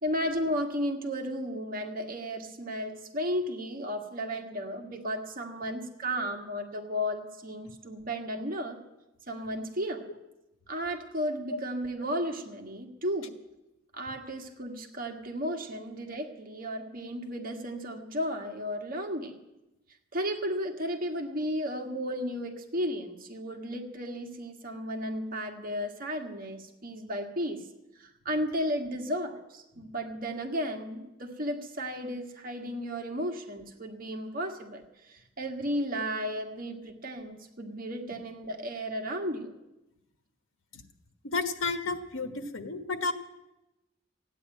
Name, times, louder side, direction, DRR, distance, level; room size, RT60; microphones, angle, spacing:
voice 1, 0.0-8.8 9.3-10.1 10.7-13.3 13.9-19.3 20.1-27.6 28.0-39.5, equal, 45° right, 3 dB, 1.7 m, -34 dB
voice 2, 41.2-43.1, left 3 dB, 90° left, 8 dB, 1.5 m, -32 dB
15.0 x 9.5 x 9.0 m, 0.95 s
head